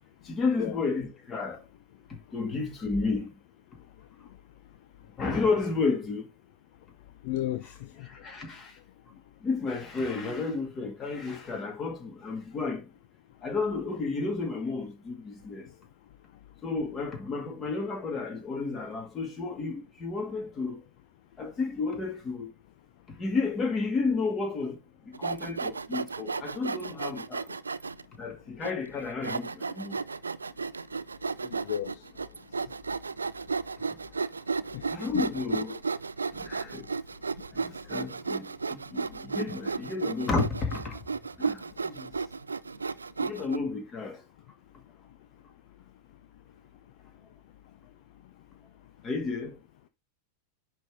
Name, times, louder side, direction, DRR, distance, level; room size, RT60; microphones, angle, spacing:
voice 1, 0.3-1.6 2.3-3.3 5.2-6.3 8.2-8.7 9.4-12.8 13.4-15.6 16.6-20.8 21.4-22.5 23.2-24.8 25.2-27.4 28.2-29.5 29.8-29.9 34.9-35.8 36.4-36.9 37.7-40.9 41.4-41.6 43.2-44.2 49.0-49.5, left 4 dB, 25° left, 2.1 m, -31 dB
voice 2, 7.2-7.7 8.0-8.1 31.4-32.0 34.7-34.9 35.1-35.2, left 12 dB, 50° left, 0.5 m, -33 dB
Sawing, 25.1-28.0 28.6-28.7 29.2-43.6, right 4 dB, 75° right, 0.3 m, -33 dB
10.0 x 3.5 x 3.7 m
figure-of-eight pair, 90°, 0 cm